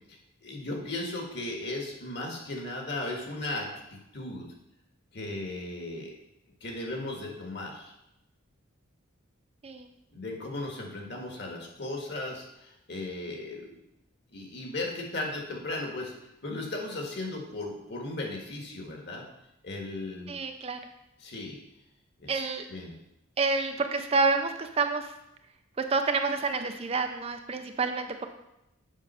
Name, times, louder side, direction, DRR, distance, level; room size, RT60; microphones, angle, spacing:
voice 1, 0.1-4.5 5.1-6.1 6.6-7.9 10.1-13.7 14.3-16.1 16.4-19.3 19.6-20.3 21.2-21.6 22.2-22.4 22.7-22.9, left 2 dB, 50° left, 1 dB, 1.6 m, -36 dB
voice 2, 20.3-20.8 22.3-22.7 23.4-25.1 25.8-28.3, right 4 dB, 30° right, 6 dB, 0.4 m, -28 dB
7.3 x 5.3 x 5.4 m, 0.87 s
head